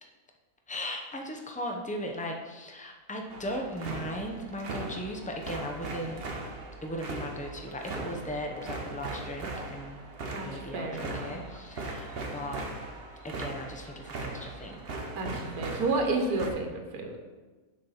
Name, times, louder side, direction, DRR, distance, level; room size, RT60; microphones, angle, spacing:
voice 1, 0.7-6.2 6.8-10.0 10.4-12.6 13.2-14.8, equal, 10° left, 2 dB, 0.5 m, -37 dB
sound 1, 3.3-16.5, right 2 dB, 45° right, 1.1 m, -39 dB
voice 2, 10.3-11.4 15.1-17.1, right 3 dB, 85° right, 3 dB, 1.5 m, -31 dB
6.9 x 5.3 x 5.8 m, 1.3 s
omnidirectional pair, 1.5 m